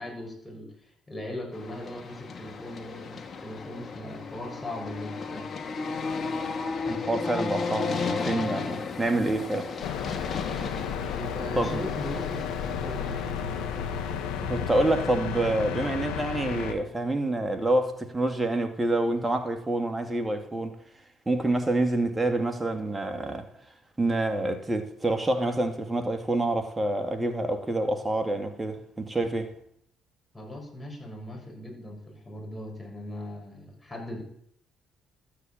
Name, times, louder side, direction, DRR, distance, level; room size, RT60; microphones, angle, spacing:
voice 1, 0.0-5.5 11.1-12.4 12.8-13.4 30.3-34.2, left 1 dB, 15° left, 6.4 m, -39 dB
sound 1, 1.5-14.6, left 4 dB, 45° left, 2.3 m, -34 dB
voice 2, 6.9-9.7 11.6-11.8 14.4-20.8 21.3-23.5 24.0-29.5, right 2 dB, 20° right, 2.3 m, -27 dB
sound 2, 9.8-16.7, left 7 dB, 80° left, 1.6 m, -32 dB
12.5 x 8.5 x 8.9 m
supercardioid pair, 60°, 0 cm